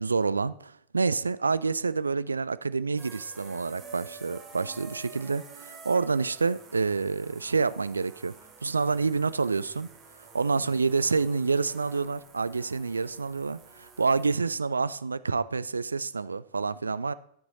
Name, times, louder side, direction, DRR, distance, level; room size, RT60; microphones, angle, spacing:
voice 1, 0.0-8.3 8.6-9.9 10.2-17.1, right 4 dB, 75° right, 0.3 m, -28 dB
sound 1, 3.0-14.3, right 4 dB, 20° right, 1.8 m, -49 dB
13.0 x 6.2 x 3.9 m
figure-of-eight pair, 90°, 0 cm